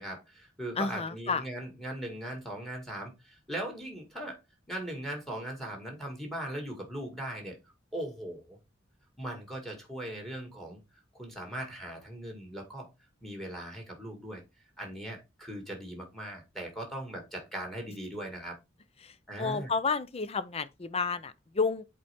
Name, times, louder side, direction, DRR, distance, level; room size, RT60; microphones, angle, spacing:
voice 1, 0.0-4.4 4.7-7.6 7.9-8.6 9.2-10.8 11.1-12.9 13.2-14.4 14.8-18.6 19.3-19.7, right 1 dB, ahead, 2.1 m, -39 dB
voice 2, 0.8-1.4 19.0-21.8, left 4 dB, 35° left, 0.6 m, -31 dB
7.9 x 4.2 x 3.6 m
head